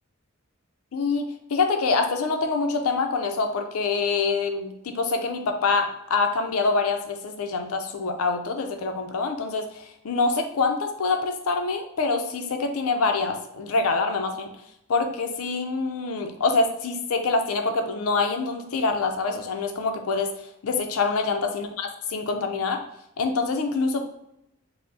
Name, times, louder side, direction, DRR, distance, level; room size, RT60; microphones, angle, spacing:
voice 1, 0.9-14.5 14.9-20.3 20.6-22.8 23.2-24.0, left 4 dB, 80° left, 5 dB, 0.5 m, -25 dB
4.5 x 2.0 x 2.6 m, 0.81 s
head